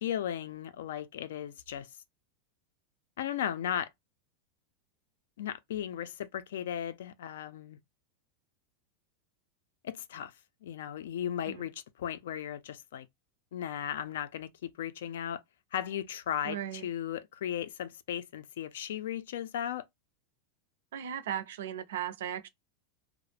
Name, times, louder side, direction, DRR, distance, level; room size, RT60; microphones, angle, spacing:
voice 1, 0.0-1.9 3.2-3.9 5.4-7.8 9.8-10.3 10.6-13.1 13.5-15.4 15.7-19.8, left 10 dB, 85° left, 0.4 m, -36 dB
voice 2, 16.4-16.9 20.9-22.5, right 10 dB, 80° right, 0.4 m, -37 dB
2.3 x 2.0 x 3.2 m
supercardioid pair, 175°, 0 cm